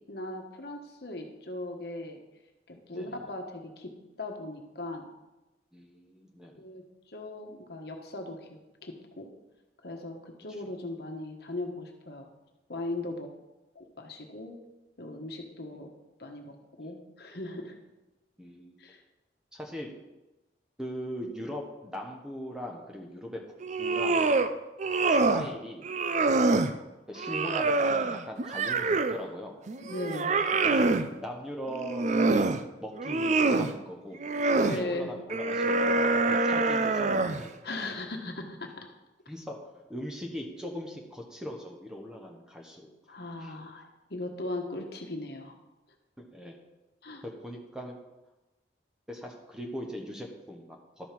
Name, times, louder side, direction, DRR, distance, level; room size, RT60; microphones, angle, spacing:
voice 1, 0.1-2.2 2.7-5.1 6.5-9.3 9.8-12.3 12.7-13.3 13.7-14.6 15.0-15.9 16.2-17.8 18.8-19.0 29.8-30.3 34.5-35.1 37.6-38.8 43.1-45.6 47.0-47.2, left 2 dB, 60° left, 3 dB, 1.3 m, -38 dB
voice 2, 5.7-6.5 16.8-16.9 18.4-18.8 19.5-19.9 20.8-23.4 23.8-24.3 25.1-25.9 27.1-29.6 30.5-32.4 32.7-34.3 34.5-35.9 36.3-37.6 39.3-43.5 46.2-46.6 47.2-48.0 49.1-51.1, equal, 5° right, 1 dB, 1.2 m, -40 dB
sound 1, 23.6-24.5 24.8-25.5 25.8-26.7 27.2-29.2 29.7-31.1 31.7-32.6 33.0-33.7 34.2-34.8 35.3-37.5, right 3 dB, 40° right, 0.5 m, -25 dB
12.5 x 5.4 x 5.9 m, 1.0 s
head